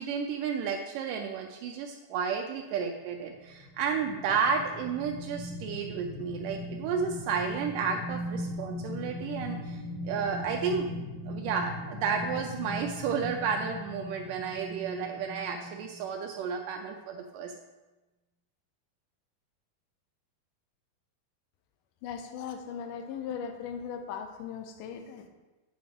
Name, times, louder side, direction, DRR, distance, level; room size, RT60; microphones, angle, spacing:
voice 1, 0.0-9.8 10.0-17.5, right 6 dB, 85° right, 3 dB, 1.9 m, -32 dB
sound 1, 3.1-16.1 16.5-16.7, left 1 dB, 35° left, 1.7 m, -39 dB
voice 2, 22.0-25.3, left 7 dB, 75° left, 6 dB, 2.0 m, -38 dB
8.8 x 5.4 x 3.5 m, 1.1 s
omnidirectional pair, 4.2 m